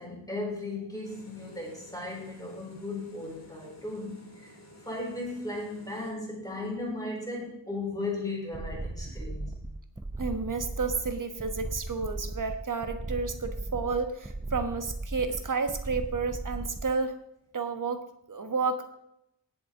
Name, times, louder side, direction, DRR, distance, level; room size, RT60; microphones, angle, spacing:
voice 1, 0.0-4.5 4.9-9.6, left 2 dB, 10° left, -2 dB, 3.9 m, -36 dB
sound 1, 1.0-6.1, left 1 dB, 40° left, 3.4 m, -53 dB
sound 2, 8.5-17.0, right 2 dB, 10° right, 0.3 m, -37 dB
voice 2, 10.2-17.2 17.5-18.9, right 4 dB, 45° right, 7 dB, 1.2 m, -31 dB
18.0 x 7.3 x 3.7 m, 0.79 s
wide cardioid pair, 130°, 43 cm